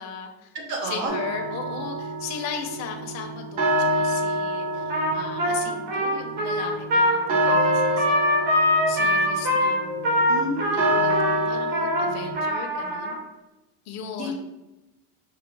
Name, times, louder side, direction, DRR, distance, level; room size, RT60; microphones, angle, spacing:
voice 1, 0.0-0.5 0.8-8.4 8.9-10.2 10.7-13.1 13.9-14.3, left 7 dB, 35° left, 3 dB, 0.6 m, -37 dB
voice 2, 0.5-1.1 10.3-10.8 14.2-14.4, right 1 dB, 85° right, -1 dB, 1.4 m, -29 dB
sound 1, 1.1-12.3, right 1 dB, 40° right, 0.8 m, -27 dB
Trumpet, 4.9-13.2, left 1 dB, 55° right, 1.4 m, -23 dB
5.2 x 2.6 x 3.3 m, 0.99 s
cardioid pair, 140°, 47 cm